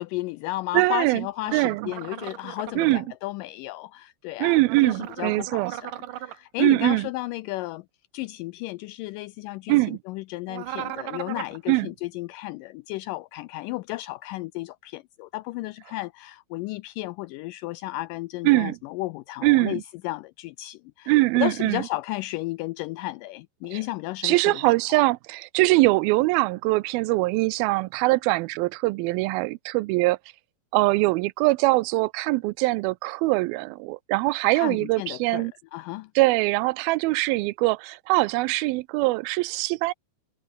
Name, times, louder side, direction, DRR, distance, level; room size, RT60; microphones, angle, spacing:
voice 1, 0.0-7.9 8.1-24.7 34.5-36.1, left 18 dB, 85° left, 1.9 m, -33 dB
voice 2, 0.7-1.2 1.5-1.9 2.8-3.0 4.4-5.7 6.6-7.1 9.7-10.0 11.7-11.9 18.4-18.8 19.4-19.8 21.1-21.8 23.7-23.8 24.2-30.2 30.7-35.5 36.2-39.9, right 21 dB, 85° right, 2.4 m, -22 dB
sound 1, 1.4-2.9 4.6-6.4 10.5-11.6, right 13 dB, 70° right, 2.6 m, -37 dB
omnidirectional pair, 4.3 m